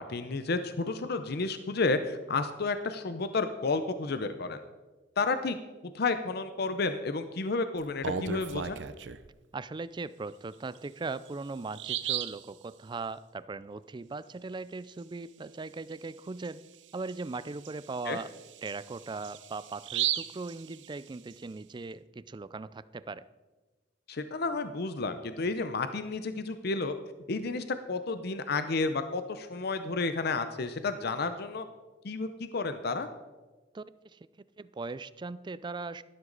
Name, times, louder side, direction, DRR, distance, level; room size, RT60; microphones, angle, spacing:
voice 1, 0.0-4.6 5.2-5.6 5.8-8.8 18.1-18.2 24.1-26.9 27.3-31.7 32.0-33.1, left 3 dB, 60° left, 10 dB, 0.7 m, -31 dB
Bird vocalization bird call bird song, 7.8-9.3 10.7-10.8 11.3-11.4 11.7-12.4 15.9-16.1 16.4-16.5 17.1-21.3, right 10 dB, 70° right, 0.6 m, -35 dB
voice 2, 9.5-16.6 16.9-18.3 18.6-23.2 33.7-34.2 34.6-36.0, right 3 dB, 25° right, 16 dB, 0.4 m, -39 dB
12.5 x 12.5 x 4.0 m, 1.2 s
head